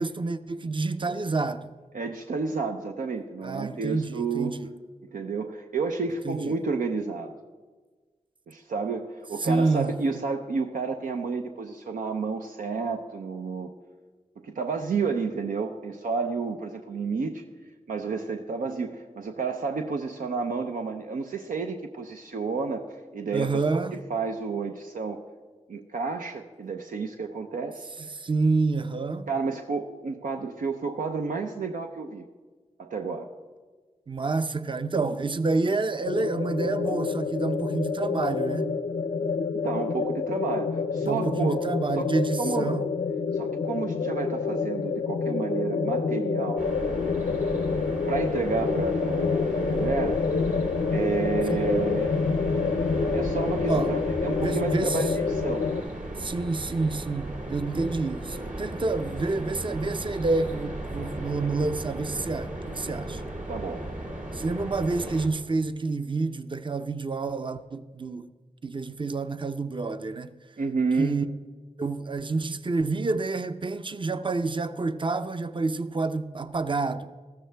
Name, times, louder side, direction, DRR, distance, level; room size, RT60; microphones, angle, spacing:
voice 1, 0.0-1.7 3.4-4.8 6.2-6.6 9.4-9.9 23.3-24.0 28.0-29.3 34.1-38.7 41.0-42.9 51.5-51.7 53.7-53.9 54.4-55.1 56.2-63.2 64.3-68.3 68.6-70.3 71.0-71.3 71.8-77.1, right 3 dB, 35° right, 0.6 m, -28 dB
voice 2, 1.9-4.6 5.0-7.3 8.5-13.7 14.4-17.4 17.9-25.2 25.7-27.9 29.3-32.3 32.8-33.3 39.5-41.6 41.9-42.1 42.4-42.7 43.3-46.7 48.1-50.2 50.9-52.2 53.1-55.6 63.5-63.8 70.6-71.2, right 4 dB, 85° right, 0.6 m, -30 dB
sound 1, 36.1-55.8, left 5 dB, 75° left, 0.6 m, -28 dB
sound 2, 46.6-65.3, right 1 dB, 70° right, 2.7 m, -36 dB
14.0 x 13.0 x 3.4 m
cardioid pair, 45°, 14 cm